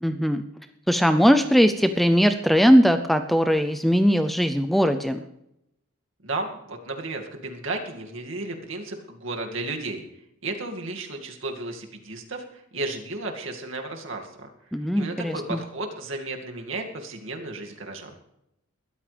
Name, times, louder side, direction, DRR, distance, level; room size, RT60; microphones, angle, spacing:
voice 1, 0.0-0.4 0.9-5.2 14.7-15.6, equal, ahead, 8 dB, 0.5 m, -20 dB
voice 2, 6.2-10.0 10.4-14.5 14.9-18.2, right 2 dB, 70° right, 2 dB, 2.3 m, -33 dB
21.5 x 13.5 x 3.4 m, 0.84 s
head